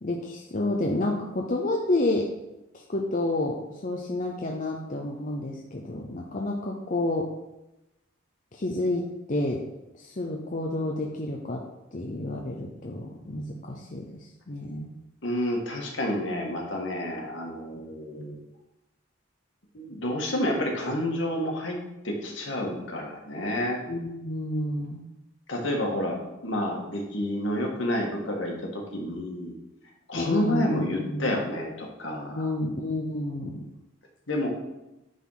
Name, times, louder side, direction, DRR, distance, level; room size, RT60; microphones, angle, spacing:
voice 1, 0.0-2.3 2.7-7.3 8.5-9.6 9.9-11.6 11.9-14.9 17.9-18.4 23.9-25.1 30.1-31.3 32.3-33.6, left 2 dB, 40° left, 0 dB, 0.7 m, -30 dB
voice 2, 15.2-18.4 19.7-21.8 22.0-23.8 25.5-29.6 30.1-32.5 34.3-34.5, left 1 dB, 65° left, 0 dB, 1.9 m, -29 dB
9.3 x 4.2 x 5.8 m, 0.95 s
head